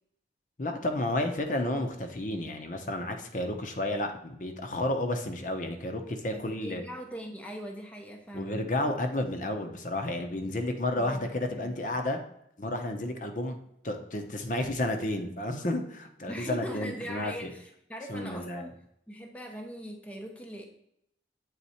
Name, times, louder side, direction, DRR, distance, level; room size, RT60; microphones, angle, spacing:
voice 1, 0.6-6.8 8.3-12.2 12.6-13.6 13.8-17.5 18.1-18.7, left 1 dB, 45° left, 5 dB, 0.8 m, -31 dB
voice 2, 6.3-8.6 11.0-11.3 11.5-11.8 16.3-18.7 19.1-20.7, equal, 5° left, 2 dB, 0.7 m, -41 dB
8.3 x 4.1 x 4.2 m, 0.76 s
head